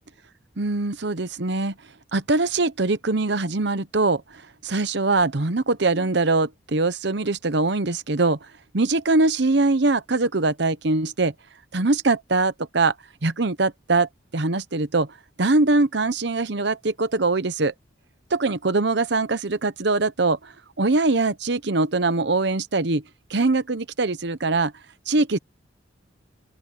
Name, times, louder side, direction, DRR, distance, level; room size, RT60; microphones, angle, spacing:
voice 1, 0.6-1.7 2.1-4.2 4.6-8.4 8.7-11.3 11.7-12.9 13.2-15.1 15.4-17.7 18.3-20.5 20.8-23.0 23.3-24.7 25.1-25.4, right 3 dB, 60° right, 1.0 m, -22 dB
open air
head